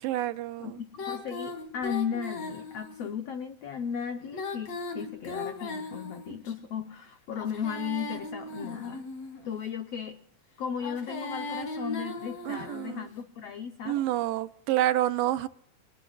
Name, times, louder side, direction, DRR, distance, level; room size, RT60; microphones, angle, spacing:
voice 1, 0.0-0.8 12.5-13.1 13.9-15.5, right 13 dB, 80° right, 11 dB, 2.4 m, -28 dB
voice 2, 0.6-9.0 9.4-10.2 10.6-14.0, left 7 dB, 85° left, 5 dB, 1.4 m, -36 dB
Female singing, 1.0-3.1 4.2-6.5 7.3-9.5 10.7-13.0, left 3 dB, 50° left, 3.4 m, -38 dB
26.5 x 20.0 x 2.4 m, 0.70 s
omnidirectional pair, 4.1 m